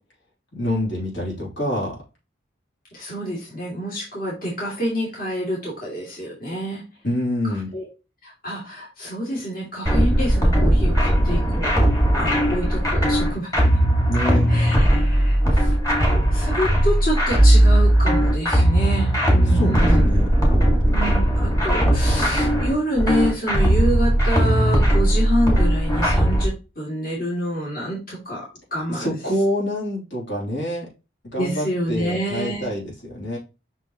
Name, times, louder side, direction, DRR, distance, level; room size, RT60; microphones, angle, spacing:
voice 1, 0.5-2.0 7.0-7.7 14.1-14.5 19.5-19.7 20.0-20.3 28.9-30.9 31.3-33.4, left 1 dB, 70° left, -4 dB, 3.2 m, -26 dB
voice 2, 2.9-6.8 7.7-7.9 8.2-11.7 12.2-13.5 14.5-20.1 20.9-28.4 28.7-29.1 31.4-32.7, equal, 45° left, -4 dB, 2.6 m, -27 dB
sound 1, 9.9-26.5, equal, 20° left, 2.0 m, -18 dB
6.1 x 5.6 x 3.0 m, 0.29 s
head